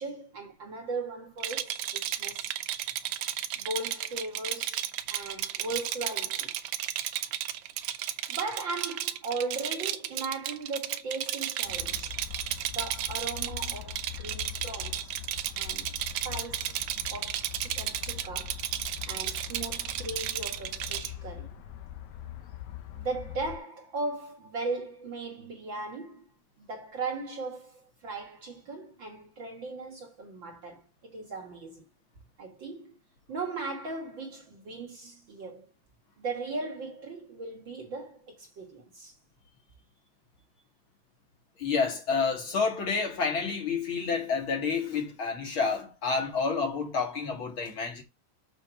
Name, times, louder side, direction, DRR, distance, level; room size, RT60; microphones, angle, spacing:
voice 1, 0.0-2.5 3.6-6.6 8.3-12.2 12.7-15.1 15.6-16.8 17.1-18.6 19.1-21.6 22.9-26.3 26.6-31.8 32.4-32.9 33.3-35.7 36.2-39.1, right 3 dB, 45° right, 2.2 m, -38 dB
Rattle, 1.4-21.1, right 12 dB, 80° right, 2.1 m, -33 dB
sound 1, 11.6-23.6, left 12 dB, 80° left, 2.6 m, -43 dB
voice 2, 41.6-48.0, left 5 dB, 45° left, 2.5 m, -29 dB
7.4 x 5.1 x 6.1 m
omnidirectional pair, 3.3 m